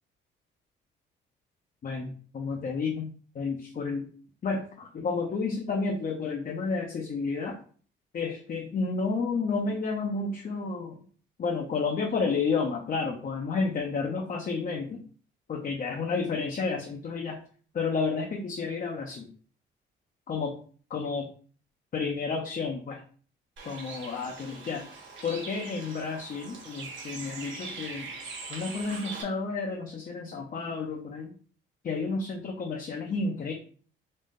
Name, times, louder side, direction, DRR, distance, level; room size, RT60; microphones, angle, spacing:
voice 1, 1.8-4.1 4.4-7.6 8.1-11.0 11.4-15.0 15.5-17.4 17.7-19.3 20.3-20.5 20.9-21.3 21.9-23.0 23.6-24.9 25.2-28.1 28.5-31.3 31.8-33.5, left 4 dB, 45° left, 1 dB, 0.7 m, -31 dB
Bird, 23.6-29.2, right 4 dB, 70° right, 1.7 m, -42 dB
4.0 x 2.5 x 3.7 m, 0.43 s
cardioid pair, 90°, 20 cm